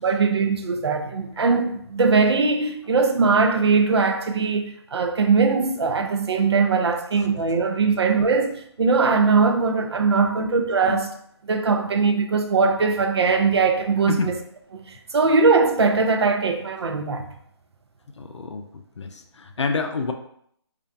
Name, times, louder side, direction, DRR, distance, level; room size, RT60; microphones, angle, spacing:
voice 1, 0.0-11.1 11.5-14.3 14.9-17.3, right 4 dB, 65° right, 0.4 m, -20 dB
voice 2, 18.2-18.7 19.0-20.1, left 4 dB, 85° left, 0.4 m, -28 dB
2.4 x 2.2 x 2.5 m
figure-of-eight pair, 160°, 15 cm